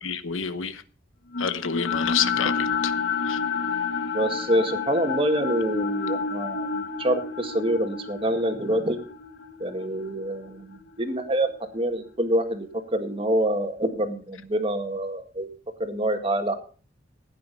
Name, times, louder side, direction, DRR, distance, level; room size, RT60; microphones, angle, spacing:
voice 1, 0.0-0.8 1.4-2.9 3.2-3.4, left 7 dB, 90° left, 1.1 m, -28 dB
sound 1, 1.3-11.5, left 5 dB, 70° left, 1.3 m, -30 dB
voice 2, 4.1-9.0 9.6-15.5 15.8-16.5, right 1 dB, 25° right, 1.9 m, -26 dB
16.0 x 9.5 x 5.4 m
head